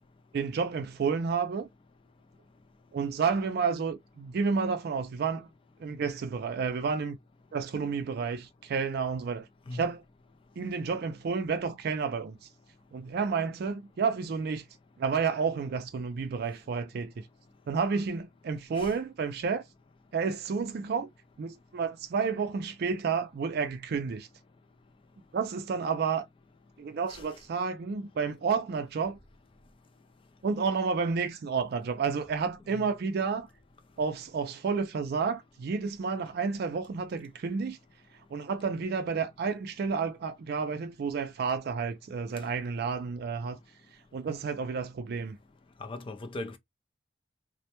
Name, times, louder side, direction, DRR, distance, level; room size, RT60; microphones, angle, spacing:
voice 1, 0.3-1.7 2.9-5.5 5.8-7.2 7.5-9.5 9.7-10.0 10.6-12.5 12.9-14.7 15.0-17.3 17.7-19.6 20.1-21.1 21.4-24.3 25.3-26.3 26.8-29.2 30.4-33.5 34.0-37.8 38.3-43.6 44.1-45.4, right 5 dB, 55° right, 0.4 m, -30 dB
voice 2, 45.8-46.6, left 2 dB, 30° left, 0.4 m, -39 dB
2.1 x 2.1 x 2.8 m
head